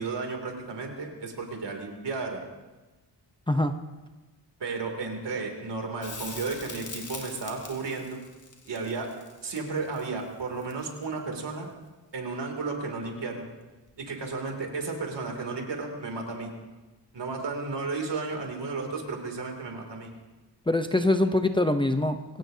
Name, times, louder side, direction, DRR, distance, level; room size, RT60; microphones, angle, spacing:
voice 1, 0.0-2.4 4.6-8.2 8.7-9.1 9.4-11.7 12.1-13.5 14.0-16.5 17.1-20.1, right 4 dB, 70° right, 2 dB, 2.9 m, -33 dB
Crackle, 6.0-11.1 13.9-14.0, left 3 dB, 45° left, 2.8 m, -43 dB
voice 2, 20.7-22.4, left 1 dB, 10° left, 6 dB, 0.7 m, -24 dB
23.0 x 17.0 x 2.8 m, 1.2 s
wide cardioid pair, 110°, 44 cm